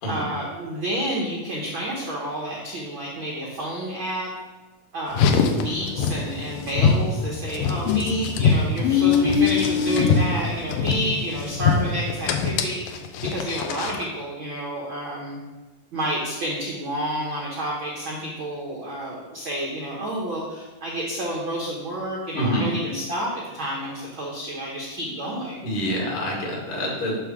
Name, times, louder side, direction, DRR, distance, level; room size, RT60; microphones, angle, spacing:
voice 1, 0.1-4.3 4.9-15.4 15.9-25.6, right 1 dB, 90° right, -3 dB, 1.1 m, -30 dB
Car, 5.1-14.1, left 6 dB, 85° left, 2.3 m, -22 dB
voice 2, 22.3-22.7 25.6-27.2, equal, 65° left, -3 dB, 3.6 m, -26 dB
10.0 x 3.8 x 6.0 m, 1.2 s
omnidirectional pair, 4.2 m